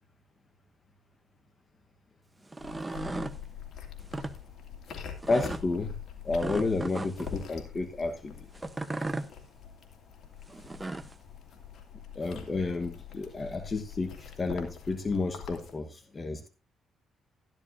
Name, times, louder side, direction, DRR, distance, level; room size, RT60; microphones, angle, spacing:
sound 1, 2.4-3.4 4.0-4.3 5.2-5.6 6.4-7.4 8.5-9.3 10.5-11.1, right 2 dB, 15° right, 0.9 m, -36 dB
sound 2, 2.6-15.7, left 8 dB, 65° left, 2.7 m, -44 dB
voice 1, 5.3-5.9 6.2-8.4 12.1-16.5, left 3 dB, 30° left, 8 dB, 1.2 m, -31 dB
13.0 x 12.0 x 2.6 m, 0.30 s
cardioid pair, 90°, 0 cm